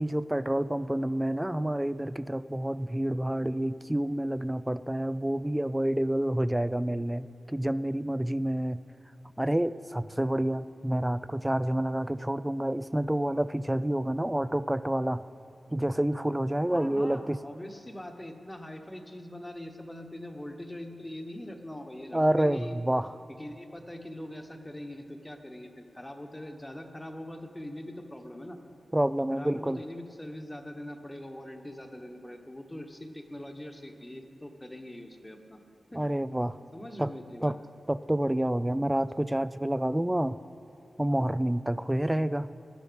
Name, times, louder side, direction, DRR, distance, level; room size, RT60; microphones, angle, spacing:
voice 1, 0.0-8.8 9.4-15.2 15.7-17.4 22.1-23.1 28.9-29.8 35.9-36.6 37.0-37.1 37.4-37.6 37.9-40.4 41.0-42.5, right 1 dB, 10° right, 15 dB, 0.4 m, -28 dB
voice 2, 16.7-22.8 23.3-28.6 29.3-35.6 35.9-36.0 36.7-37.5, left 1 dB, 15° left, 5 dB, 1.3 m, -42 dB
17.0 x 11.0 x 5.2 m, 2.8 s
wide cardioid pair, 85°, 0 cm